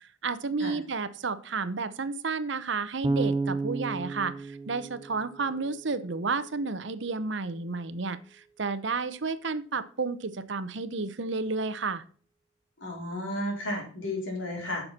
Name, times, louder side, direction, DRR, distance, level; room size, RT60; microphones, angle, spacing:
voice 1, 0.0-12.0, right 4 dB, 60° right, 13 dB, 0.8 m, -31 dB
Bass guitar, 3.0-6.1, right 3 dB, 20° right, 0.9 m, -32 dB
voice 2, 12.8-14.9, left 1 dB, 65° left, 0 dB, 4.2 m, -33 dB
10.5 x 6.7 x 4.3 m, 0.43 s
head